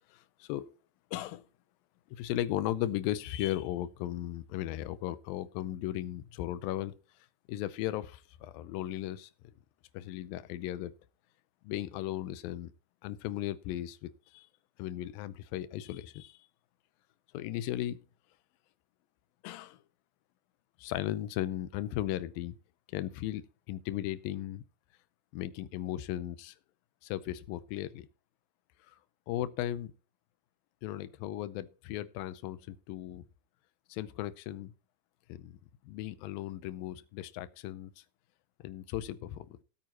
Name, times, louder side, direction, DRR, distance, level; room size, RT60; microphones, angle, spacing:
voice 1, 0.1-0.7 1.1-1.4 2.1-6.9 7.5-9.3 9.9-10.9 11.6-12.7 13.0-14.5 14.8-16.4 17.3-18.0 19.4-19.8 20.8-22.6 22.9-24.6 25.3-26.6 27.0-28.1 28.9-29.0 29.3-29.9 30.8-33.3 33.9-34.7 35.3-35.6 35.8-38.0 38.6-39.6, left 13 dB, 75° left, 2.2 m, -36 dB
18.0 x 8.6 x 2.9 m
omnidirectional pair, 4.7 m